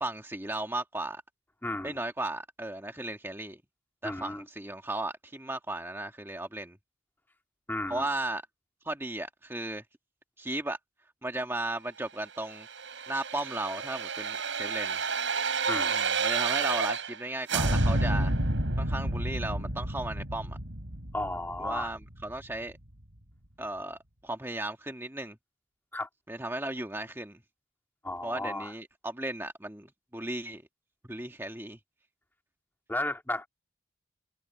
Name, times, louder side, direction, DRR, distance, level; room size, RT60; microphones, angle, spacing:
voice 1, 0.0-1.2 1.8-3.6 4.0-6.8 7.9-8.4 8.8-9.8 10.4-10.8 11.2-12.7 13.1-15.0 15.9-18.3 18.8-20.6 21.6-22.8 23.6-25.4 26.3-27.4 28.2-30.6 31.0-31.8, right 2 dB, 10° right, 1.5 m, -35 dB
voice 2, 1.6-2.0 4.0-4.4 7.7-8.0 15.7-15.9 21.1-21.9 25.9-26.1 28.0-28.7 32.9-33.5, left 1 dB, 10° left, 2.2 m, -34 dB
sound 1, 12.5-17.2 17.5-22.3 22.7-22.8, right 3 dB, 75° right, 4.6 m, -30 dB
head